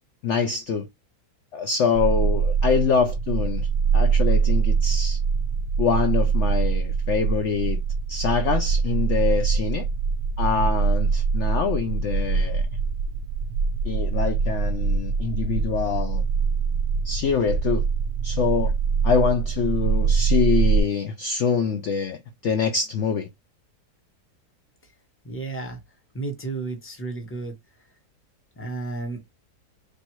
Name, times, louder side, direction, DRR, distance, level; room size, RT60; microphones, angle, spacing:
voice 1, 0.2-0.9 1.5-3.7 3.9-5.2 5.8-7.8 8.1-9.9 10.4-12.6 13.8-16.2 17.0-17.8 18.2-18.7 19.0-23.3, left 6 dB, 60° left, 0.8 m, -25 dB
sound 1, 1.9-20.8, right 5 dB, 60° right, 0.7 m, -23 dB
voice 2, 25.2-25.8 26.1-27.5 28.6-29.2, right 3 dB, 10° left, 1.0 m, -32 dB
3.5 x 2.6 x 4.5 m
omnidirectional pair, 1.8 m